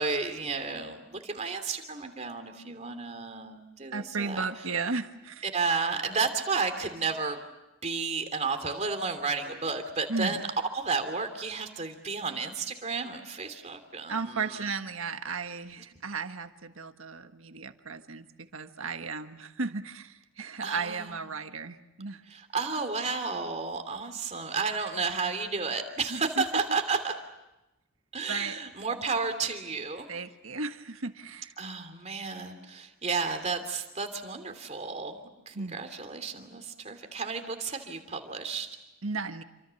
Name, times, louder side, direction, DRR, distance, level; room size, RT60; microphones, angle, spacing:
voice 1, 0.0-4.4 5.4-7.4 7.8-10.5 10.7-14.7 20.6-21.1 22.3-27.1 28.1-30.1 31.6-38.7, right 4 dB, 35° right, 7 dB, 3.0 m, -32 dB
voice 2, 3.9-5.5 10.1-10.4 14.1-22.2 26.1-26.6 28.3-28.6 30.1-31.5 35.5-35.8 39.0-39.4, right 4 dB, 80° right, 7 dB, 1.6 m, -35 dB
28.5 x 25.5 x 7.1 m, 0.97 s
head